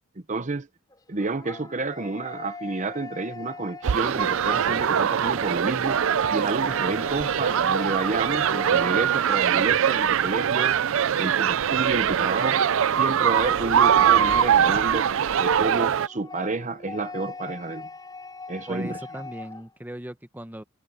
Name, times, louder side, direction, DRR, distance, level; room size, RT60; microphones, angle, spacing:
voice 1, 0.3-0.7 1.1-6.0 6.3-10.8 11.2-12.6 13.0-15.1 15.4-17.9 18.5-19.0, right 3 dB, 35° right, 0.9 m, -30 dB
sound 1, 0.9-9.6 11.9-19.7, left 4 dB, 15° left, 4.8 m, -41 dB
sound 2, 3.8-16.1, right 8 dB, 60° right, 0.4 m, -22 dB
voice 2, 18.7-20.6, right 1 dB, 10° right, 1.0 m, -38 dB
head